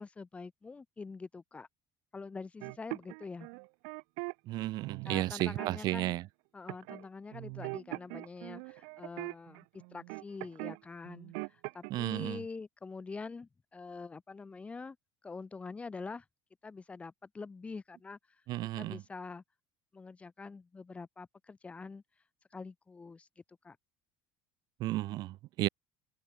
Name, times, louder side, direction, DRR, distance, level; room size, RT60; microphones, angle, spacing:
voice 1, 0.0-1.7 2.1-3.5 5.0-6.2 6.5-15.0 15.2-16.2 16.6-18.2 18.8-19.4 19.9-22.0 22.5-23.3 23.6-23.8 25.6-25.7, left 4 dB, 15° left, 1.3 m, -45 dB
sound 1, 2.6-4.3 4.8-6.0 6.7-7.0 7.3-10.8 11.0-11.9, right 40 dB or more, 85° right, 1.6 m, -41 dB
voice 2, 4.5-6.2 11.9-12.4 18.5-19.0 24.8-25.7, right 17 dB, 55° right, 1.2 m, -33 dB
open air
cardioid pair, 150°, 8 cm